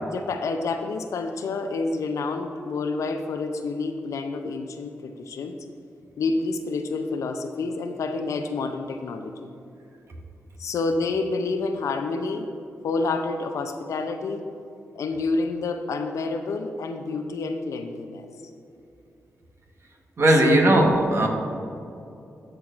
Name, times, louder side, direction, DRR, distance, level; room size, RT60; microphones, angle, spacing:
voice 1, 0.0-5.6 6.2-9.5 10.6-12.5 12.8-14.4 15.0-18.3 20.3-20.7, left 3 dB, 75° left, 7 dB, 0.5 m, -28 dB
voice 2, 20.2-21.3, right 1 dB, 55° right, 1 dB, 1.2 m, -18 dB
13.5 x 4.6 x 2.5 m, 2.7 s
supercardioid pair, 50°, 5 cm